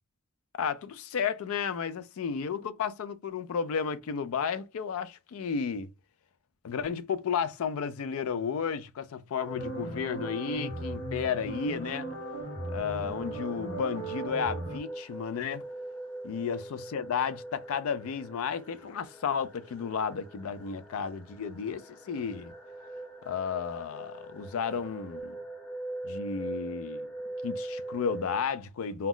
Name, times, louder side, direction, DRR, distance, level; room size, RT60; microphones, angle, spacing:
voice 1, 0.5-5.9 6.6-12.1 12.7-15.6 16.2-22.5 23.2-25.4 26.0-27.1 27.4-29.1, left 6 dB, 80° left, 0.4 m, -33 dB
sound 1, 9.4-28.4, right 2 dB, 10° left, 0.6 m, -42 dB
sound 2, 9.5-14.8, right 2 dB, 55° left, 1.0 m, -38 dB
2.3 x 2.0 x 3.7 m
head